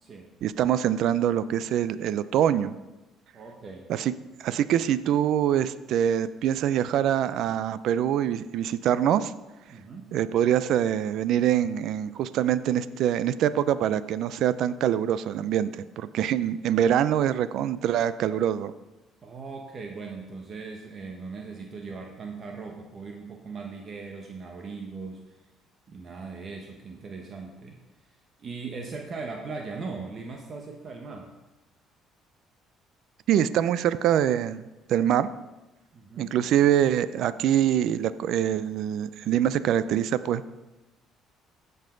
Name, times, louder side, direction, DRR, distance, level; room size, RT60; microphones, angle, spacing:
voice 1, 0.4-2.8 3.9-4.1 4.4-9.3 10.1-18.7 33.3-34.6 34.9-35.3 36.2-40.6, right 10 dB, 70° right, 15 dB, 0.4 m, -24 dB
voice 2, 3.3-3.9 9.7-10.1 19.2-25.2 25.9-27.8 28.4-31.3 35.9-36.3, right 4 dB, 45° right, 2 dB, 1.3 m, -39 dB
16.0 x 5.5 x 3.9 m, 1.0 s
supercardioid pair, 80°, 0 cm